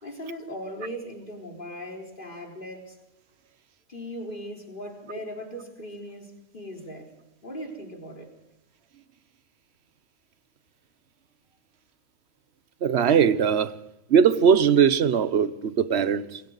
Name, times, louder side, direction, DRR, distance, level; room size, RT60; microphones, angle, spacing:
voice 1, 0.0-3.0 3.9-7.1 7.4-8.3, equal, 40° left, 4.2 m, -38 dB
voice 2, 12.8-13.8 14.1-16.4, right 7 dB, 60° right, 1.1 m, -20 dB
27.5 x 23.5 x 4.0 m
omnidirectional pair, 1.3 m